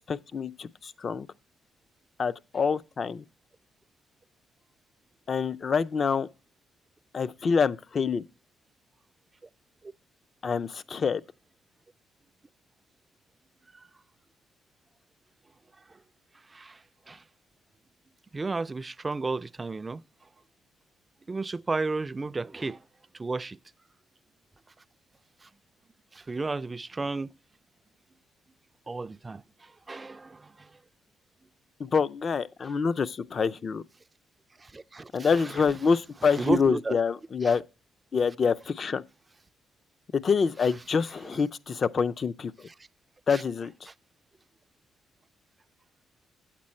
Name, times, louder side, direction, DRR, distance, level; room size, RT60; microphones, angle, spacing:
voice 1, 0.1-1.3 2.2-3.2 5.3-6.3 7.1-8.2 10.4-11.2 31.8-33.8 35.1-37.6 38.1-39.0 40.1-42.7 43.3-43.7, left 5 dB, 45° left, 0.4 m, -26 dB
voice 2, 16.5-17.2 18.3-20.0 21.3-22.8 23.1-23.6 25.4-25.5 26.1-27.3 28.9-30.8 34.6-35.7 36.3-37.0 37.4-37.6 40.6-40.7 43.3-43.4 43.9-44.0, right 3 dB, 25° right, 0.3 m, -33 dB
8.8 x 7.5 x 4.2 m
cardioid pair, 90°, 0 cm